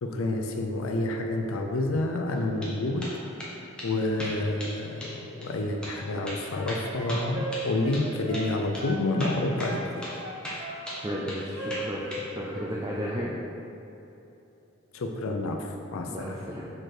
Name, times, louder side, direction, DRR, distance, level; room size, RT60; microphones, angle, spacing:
voice 1, 0.0-3.1 3.8-9.8 14.9-16.4, left 2 dB, 75° left, 3 dB, 0.5 m, -29 dB
sound 1, 2.3-2.7 3.0-3.5 3.8-3.9 4.2-4.8 5.0-5.2 5.4-5.5 5.8-6.0 6.3-8.1 8.3-8.5 8.7-8.9 9.2-10.2 10.4-11.4 11.7-12.3, equal, 5° left, 1.0 m, -37 dB
sound 2, 6.0-6.7 6.9-8.5 8.8-9.9 10.2-11.2 11.6-12.7 12.9-13.2, right 1 dB, 60° right, 1.5 m, -38 dB
voice 2, 11.0-13.3 16.1-16.7, equal, 20° right, -4 dB, 0.5 m, -33 dB
6.0 x 4.4 x 4.8 m, 2.9 s
head